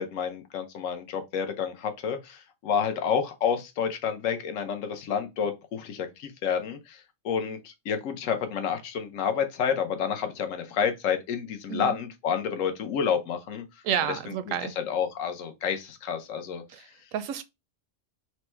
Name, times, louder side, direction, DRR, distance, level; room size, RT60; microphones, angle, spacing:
voice 1, 0.0-7.0 7.2-13.6 14.9-16.6, left 7 dB, 80° left, 1.1 m, -29 dB
voice 2, 13.8-14.7 16.7-17.4, right 9 dB, 85° right, 1.0 m, -30 dB
4.5 x 2.1 x 4.3 m
omnidirectional pair, 1.3 m